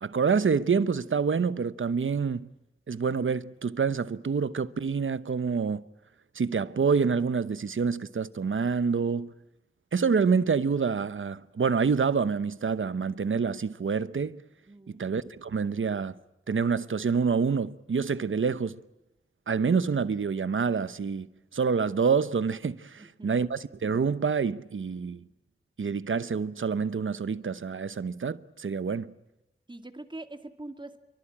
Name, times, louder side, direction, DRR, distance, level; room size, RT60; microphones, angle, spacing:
voice 1, 0.0-2.5 2.9-5.8 6.3-9.3 9.9-14.4 14.9-16.1 16.5-18.8 19.5-21.3 21.5-25.2 25.8-29.1, right 5 dB, 80° right, 1.0 m, -27 dB
voice 2, 14.7-15.0 23.0-23.3 29.7-31.0, right 2 dB, 25° right, 2.2 m, -43 dB
28.0 x 24.0 x 8.7 m
wide cardioid pair, 90°, 20 cm